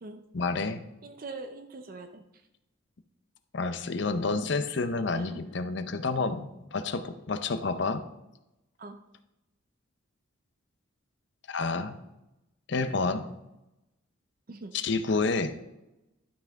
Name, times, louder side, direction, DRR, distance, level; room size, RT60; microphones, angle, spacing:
voice 1, 0.3-0.8 3.5-8.0 11.5-12.0 12.7-13.3 14.7-15.5, left 3 dB, 60° left, 10 dB, 0.6 m, -29 dB
voice 2, 1.0-2.2 5.1-5.4 8.8-9.0 14.5-14.7, right 3 dB, 45° right, 7 dB, 0.5 m, -42 dB
11.5 x 5.8 x 3.5 m, 0.93 s
head